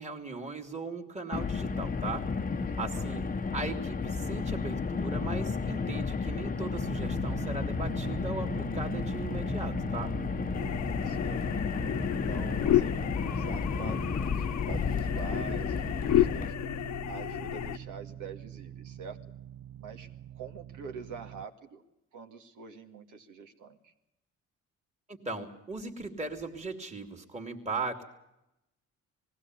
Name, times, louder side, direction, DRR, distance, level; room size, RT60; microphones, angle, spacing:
voice 1, 0.0-2.3 2.8-3.3 3.5-10.1 25.1-28.1, right 3 dB, 20° right, 3 dB, 2.6 m, -38 dB
Car, 1.3-16.5, left 5 dB, 30° left, 0.9 m, -32 dB
voice 2, 2.5-3.0 10.5-11.4 12.0-16.6 17.1-19.2 19.8-20.1 20.3-21.8 22.1-23.9, right 6 dB, 85° right, 6 dB, 2.2 m, -45 dB
sound 1, 6.8-21.5, right 11 dB, 65° right, 0.7 m, -43 dB
sound 2, 10.5-17.8, left 12 dB, 65° left, 1.0 m, -31 dB
20.0 x 15.5 x 9.6 m, 0.89 s
cardioid pair, 90°, 30 cm